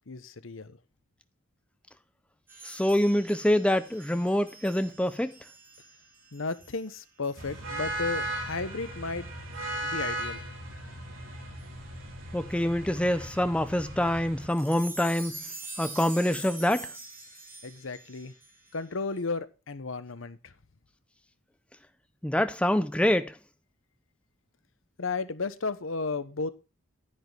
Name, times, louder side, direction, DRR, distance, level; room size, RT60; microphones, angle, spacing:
voice 1, 0.1-0.8 6.3-9.3 9.8-10.4 17.6-18.3 18.7-20.5 25.0-26.5, left 4 dB, 85° left, 1.0 m, -34 dB
sound 1, 2.5-6.9 7.2-7.4 8.1-8.3 9.5-9.6 10.2-10.3 11.6-11.7 14.5-19.2, right 2 dB, 10° right, 4.5 m, -45 dB
voice 2, 2.6-5.3 12.3-15.4 15.8-16.9 22.2-23.3, left 1 dB, 5° left, 0.5 m, -26 dB
sound 2, 7.4-14.5, right 1 dB, 85° right, 3.8 m, -37 dB
10.5 x 10.0 x 3.4 m
head